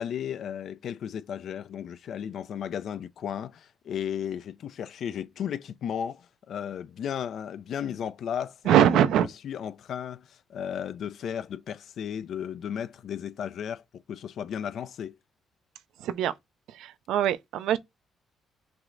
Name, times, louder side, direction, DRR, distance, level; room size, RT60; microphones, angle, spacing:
voice 1, 0.0-13.8 14.1-15.2, left 8 dB, 65° left, 0.4 m, -34 dB
voice 2, 8.7-9.3 16.0-16.3 16.7-17.8, right 10 dB, 85° right, 0.5 m, -22 dB
5.9 x 2.1 x 3.7 m
cardioid pair, 90°, 0 cm